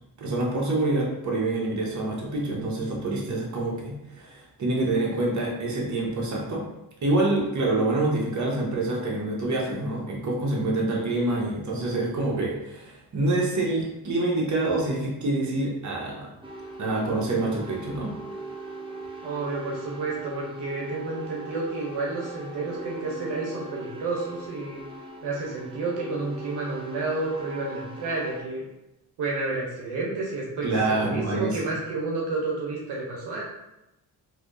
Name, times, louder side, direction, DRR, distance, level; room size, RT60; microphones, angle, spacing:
voice 1, 0.2-6.6 7.0-16.3 16.8-18.1 30.6-31.6, right 2 dB, 45° right, -2 dB, 1.1 m, -26 dB
sound 1, 16.4-28.4, right 1 dB, 15° right, 0.6 m, -41 dB
voice 2, 19.2-24.8 25.2-28.6 29.2-33.4, right 3 dB, 80° right, -3 dB, 0.8 m, -30 dB
3.4 x 2.8 x 2.6 m, 0.91 s
cardioid pair, 65°, 39 cm